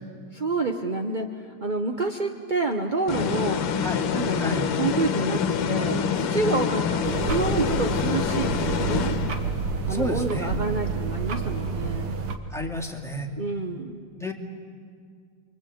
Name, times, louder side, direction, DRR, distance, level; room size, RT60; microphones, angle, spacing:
voice 1, 0.3-3.7 4.1-9.2 9.9-12.2 13.4-14.0, right 3 dB, 40° right, 3 dB, 0.7 m, -28 dB
sound 1, 3.1-9.7, left 7 dB, 80° left, 2.1 m, -26 dB
sound 2, 7.0-12.4, right 5 dB, 75° right, 2.5 m, -29 dB
voice 2, 9.9-10.5 12.5-13.3 14.2-14.3, left 1 dB, ahead, 2 dB, 2.2 m, -30 dB
28.5 x 24.0 x 8.7 m, 2.2 s
omnidirectional pair, 2.4 m